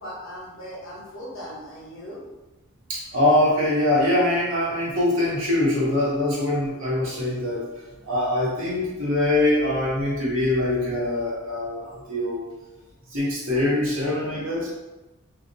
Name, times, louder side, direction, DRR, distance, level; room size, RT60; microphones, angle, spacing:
voice 1, 0.0-2.2, equal, 65° left, -5 dB, 0.8 m, -39 dB
voice 2, 2.9-7.6 8.0-12.5 13.1-14.7, left 1 dB, 65° right, -6 dB, 0.8 m, -23 dB
2.7 x 2.0 x 2.5 m, 1.1 s
head